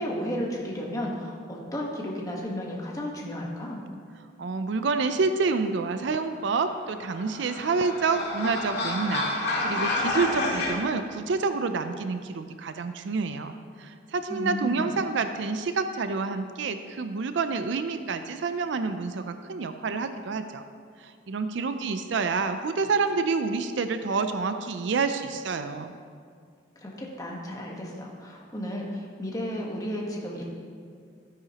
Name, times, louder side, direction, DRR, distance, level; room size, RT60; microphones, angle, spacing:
voice 1, 0.0-3.8 14.3-14.9 26.8-30.4, equal, 15° left, -2 dB, 1.2 m, -33 dB
voice 2, 4.4-13.5 13.8-20.6 21.3-25.9, right 4 dB, 65° right, 9 dB, 0.4 m, -28 dB
sound 1, 6.8-10.7, left 2 dB, 55° left, 1.9 m, -29 dB
12.5 x 9.7 x 2.9 m, 2.1 s
head